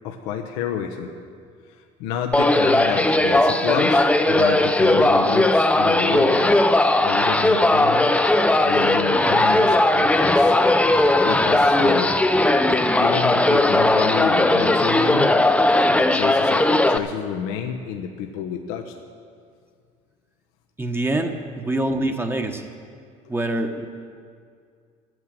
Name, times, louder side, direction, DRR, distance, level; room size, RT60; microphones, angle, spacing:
voice 1, 0.0-1.1 2.0-6.7 7.0-10.6 11.2-12.1 13.0-15.4 15.9-18.9, left 8 dB, 80° left, 4 dB, 1.1 m, -29 dB
sound 1, 2.3-17.0, left 1 dB, 5° left, 0.8 m, -18 dB
voice 2, 20.8-22.6 23.3-23.9, right 1 dB, 15° right, 5 dB, 1.4 m, -25 dB
13.5 x 9.4 x 7.8 m, 2.2 s
supercardioid pair, 90°, 17 cm